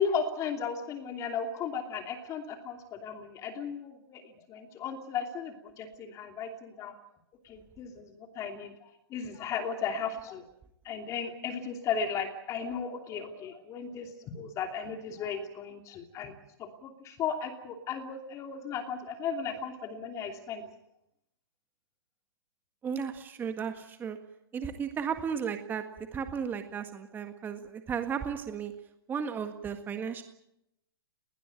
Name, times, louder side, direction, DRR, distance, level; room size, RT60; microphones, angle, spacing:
voice 1, 0.0-4.2 4.5-6.9 7.4-10.4 10.8-16.3 16.6-20.6, left 6 dB, 25° left, 5 dB, 2.9 m, -35 dB
voice 2, 22.8-24.2 24.5-25.8 26.1-28.7 29.1-30.2, right 7 dB, 15° right, 7 dB, 1.7 m, -34 dB
21.0 x 19.5 x 8.9 m, 0.80 s
figure-of-eight pair, 125°, 13 cm